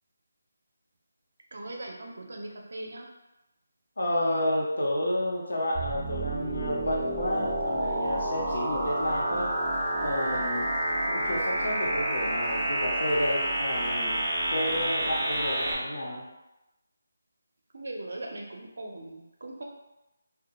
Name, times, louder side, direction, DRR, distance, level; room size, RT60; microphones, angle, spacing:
voice 1, 1.5-3.1 17.7-19.6, right 2 dB, 70° right, 1 dB, 0.5 m, -39 dB
voice 2, 4.0-9.6 10.0-10.7 11.1-14.2 14.5-16.2, left 1 dB, 75° left, -4 dB, 0.8 m, -30 dB
sound 1, 5.7-15.7, right 1 dB, 15° right, 0.4 m, -29 dB
2.2 x 2.2 x 2.9 m, 0.97 s
figure-of-eight pair, 165°, 0 cm